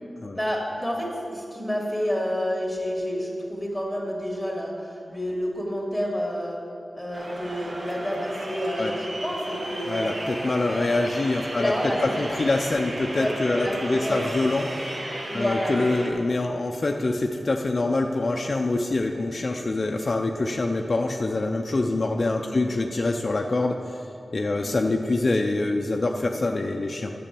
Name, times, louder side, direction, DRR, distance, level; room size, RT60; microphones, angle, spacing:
voice 1, 0.3-6.6 6.9-10.2 10.7-11.0 11.6-12.2 13.1-13.3 13.5-14.3 15.3-16.1 22.6-22.8 24.6-24.8, equal, 5° right, -2 dB, 2.6 m, -29 dB
sound 1, 7.1-16.1, right 1 dB, 55° right, 1.4 m, -35 dB
voice 2, 9.9-14.7 15.3-23.8 24.3-27.1, left 2 dB, 50° left, 3 dB, 0.5 m, -25 dB
8.9 x 6.9 x 7.0 m, 2.7 s
cardioid pair, 55°, 0 cm